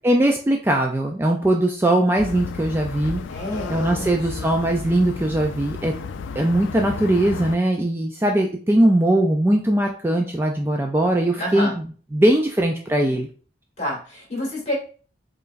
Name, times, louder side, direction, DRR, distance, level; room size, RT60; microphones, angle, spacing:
voice 1, 0.0-3.2 3.7-5.9 6.4-11.8 12.1-13.3, right 1 dB, 10° right, 2 dB, 0.3 m, -20 dB
sound 1, 2.2-7.6, left 5 dB, 90° left, 0.3 m, -33 dB
voice 2, 3.3-4.6 11.4-11.7 13.8-14.7, left 1 dB, 35° left, -3 dB, 1.9 m, -29 dB
4.6 x 3.1 x 2.5 m, 0.40 s
head